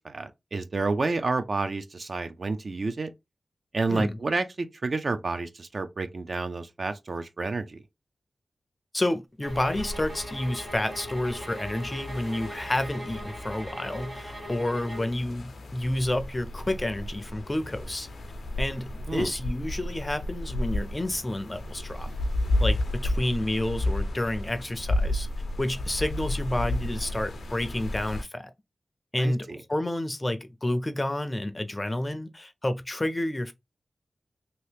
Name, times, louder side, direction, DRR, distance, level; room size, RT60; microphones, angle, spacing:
voice 1, 0.0-3.1 3.7-7.8 19.1-19.3 29.2-29.6, right 3 dB, 55° right, 0.4 m, -30 dB
voice 2, 8.9-18.1 18.6-22.1 22.6-25.3 25.6-28.5 29.1-33.5, left 1 dB, 25° left, 0.4 m, -30 dB
sound 1, 9.4-15.2, equal, 35° right, 1.3 m, -41 dB
sound 2, 9.5-28.2, left 1 dB, 85° left, 0.5 m, -33 dB
2.8 x 2.8 x 3.3 m
wide cardioid pair, 95°, 0 cm